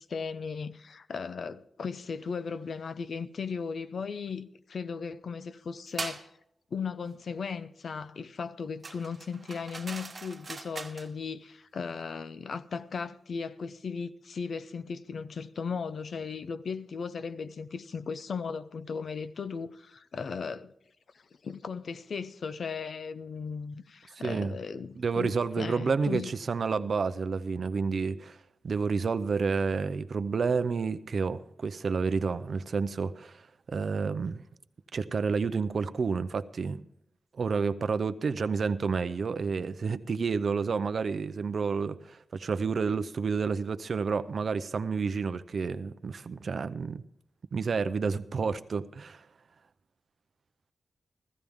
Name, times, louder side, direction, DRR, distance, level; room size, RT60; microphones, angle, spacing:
voice 1, 0.0-6.3 6.7-20.7 21.4-26.3, left 5 dB, 60° left, 0.6 m, -37 dB
sound 1, 6.0-6.3 8.8-11.1, right 3 dB, 35° right, 1.2 m, -40 dB
voice 2, 25.0-28.4 28.6-33.4 33.7-34.4 34.9-36.9 37.4-47.0 47.5-49.2, right 5 dB, 50° right, 0.6 m, -30 dB
15.5 x 14.5 x 3.6 m
wide cardioid pair, 160°, 0 cm